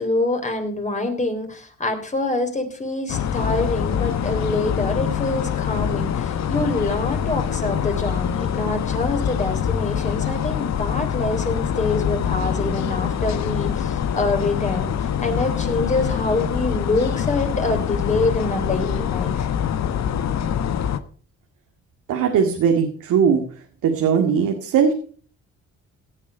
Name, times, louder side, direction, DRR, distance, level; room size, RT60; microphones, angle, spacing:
voice 1, 0.0-19.5, left 2 dB, 25° left, 5 dB, 3.7 m, -25 dB
sound 1, 3.1-21.0, left 8 dB, 60° left, 1.2 m, -24 dB
voice 2, 22.1-23.4 23.8-24.9, right 7 dB, 80° right, 3 dB, 2.1 m, -19 dB
17.0 x 7.5 x 5.5 m, 0.43 s
cardioid pair, 90°, 30 cm